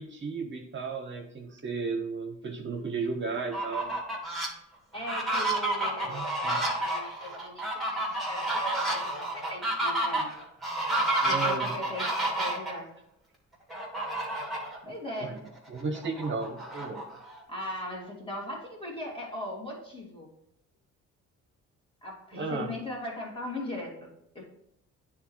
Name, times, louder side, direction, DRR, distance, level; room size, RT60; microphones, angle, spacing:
voice 1, 0.0-4.0 6.0-6.6 11.2-11.7 15.2-15.4 15.7-17.0 22.3-22.7, right 4 dB, 40° right, 4 dB, 0.8 m, -34 dB
Fowl, 3.4-4.5 5.0-12.7 13.7-14.8 15.2-15.3 15.7-17.4, right 1 dB, ahead, 1.8 m, -30 dB
voice 2, 4.9-10.3 11.3-12.9 14.3-14.6 14.9-15.4 17.5-20.3 22.0-24.1 24.3-24.4, left 1 dB, 15° left, -2 dB, 2.2 m, -39 dB
9.3 x 3.8 x 3.1 m, 0.78 s
cardioid pair, 90°, 30 cm